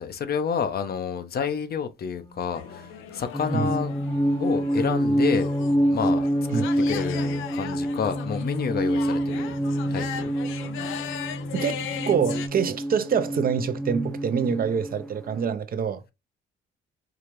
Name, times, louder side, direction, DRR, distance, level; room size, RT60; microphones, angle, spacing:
voice 1, 0.0-3.9 4.4-5.5 5.9-6.3 6.5-9.5 9.9-10.3, left 7 dB, 50° left, 0.7 m, -29 dB
Wind instrument woodwind instrument, 2.0-8.1, equal, 20° left, 0.9 m, -47 dB
sound 1, 2.5-12.5, left 9 dB, 85° left, 0.5 m, -38 dB
sound 2, 3.3-15.4, equal, 5° left, 0.4 m, -27 dB
voice 2, 11.5-16.0, right 7 dB, 50° right, 0.6 m, -25 dB
4.9 x 2.4 x 3.0 m
cardioid pair, 90°, 20 cm